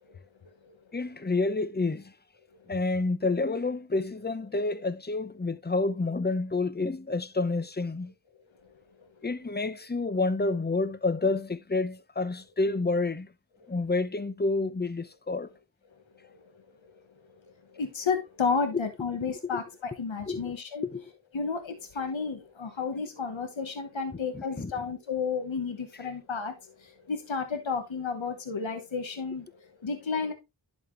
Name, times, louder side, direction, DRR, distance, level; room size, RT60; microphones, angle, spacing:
voice 1, 0.9-2.1 2.7-8.1 9.2-13.3 13.7-15.5 19.5-19.6 20.3-20.5 20.8-21.1 24.3-24.7, left 3 dB, 20° left, 0.7 m, -29 dB
voice 2, 17.7-20.9 21.3-30.3, left 5 dB, 85° left, 1.1 m, -32 dB
11.5 x 4.3 x 3.0 m
wide cardioid pair, 50°, 45 cm